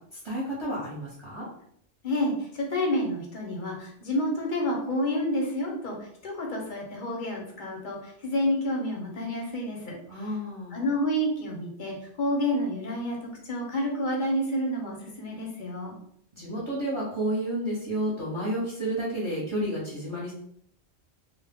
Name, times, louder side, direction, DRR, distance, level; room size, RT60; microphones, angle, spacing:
voice 1, 0.1-1.5 10.1-10.8 16.3-20.3, right 1 dB, 30° right, -7 dB, 0.8 m, -31 dB
voice 2, 2.0-10.0 10.7-15.9, left 1 dB, 50° left, 0 dB, 0.7 m, -29 dB
2.2 x 2.1 x 3.4 m, 0.68 s
omnidirectional pair, 1.2 m